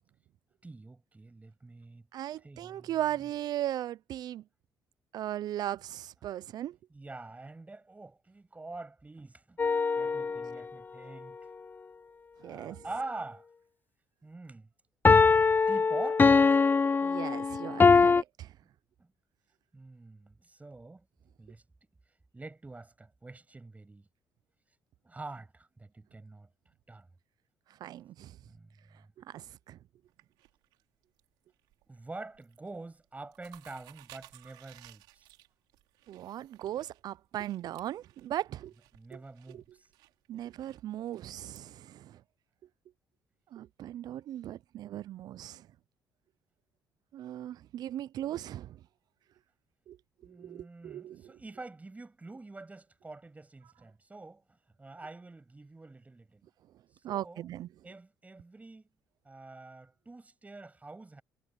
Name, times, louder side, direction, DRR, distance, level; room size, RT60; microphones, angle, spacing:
voice 1, 0.6-2.0 2.4-3.0 6.9-9.6 10.0-11.4 12.4-13.4 14.2-14.7 15.1-16.5 19.0-19.1 19.7-21.0 21.4-21.6 22.3-24.1 25.0-26.5 26.9-27.1 28.5-29.0 31.9-35.2 38.9-39.6 50.2-56.4 57.1-58.8 59.2-61.2, right 3 dB, 20° right, 6.6 m, -46 dB
voice 2, 2.1-4.4 5.1-6.8 12.4-12.8 17.0-18.5 27.8-28.4 29.3-29.8 36.1-38.7 39.1-39.2 39.5-39.6 40.3-42.2 43.5-45.6 47.1-48.8 49.9-50.0 50.4-51.3 57.0-57.7, right 12 dB, 65° right, 0.4 m, -38 dB
sound 1, 9.6-10.6 15.0-18.2, left 4 dB, 25° left, 0.5 m, -22 dB
sound 2, 30.1-31.3 31.6-32.0 32.3-32.7 33.0-41.6, right 18 dB, 90° right, 5.2 m, -58 dB
supercardioid pair, 75°, 7 cm